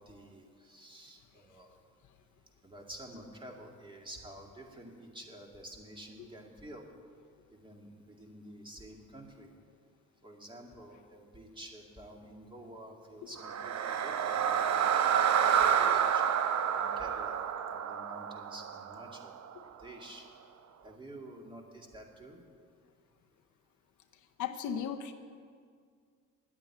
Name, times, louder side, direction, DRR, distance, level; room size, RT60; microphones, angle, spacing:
voice 1, 0.0-1.8 2.6-6.9 7.5-9.5 10.2-14.4 14.7-16.2 16.7-17.4 17.7-19.3 19.8-20.2 20.8-22.4, right 1 dB, 15° right, 0 dB, 2.2 m, -50 dB
sound 1, 13.4-19.5, right 8 dB, 60° right, 0.8 m, -29 dB
voice 2, 24.4-25.1, left 8 dB, 75° left, 7 dB, 0.8 m, -36 dB
10.0 x 8.9 x 9.5 m, 2.1 s
cardioid pair, 90°, 30 cm